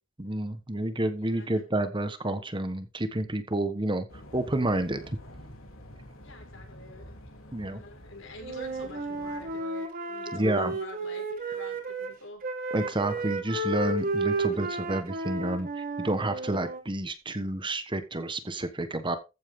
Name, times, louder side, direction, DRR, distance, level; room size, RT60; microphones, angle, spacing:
voice 1, 0.2-4.0 4.3-5.2 7.5-7.8 10.3-10.8 12.7-19.2, right 1 dB, 25° right, 10 dB, 1.3 m, -29 dB
voice 2, 1.2-1.6 6.2-7.2 7.6-12.4, left 2 dB, 65° left, 1 dB, 6.6 m, -47 dB
sound 1, 4.1-9.6, left 1 dB, 80° left, 3.8 m, -48 dB
Wind instrument woodwind instrument, 8.4-12.1 12.4-16.8, right 2 dB, 45° right, 3.7 m, -32 dB
15.0 x 8.7 x 3.8 m, 0.29 s
head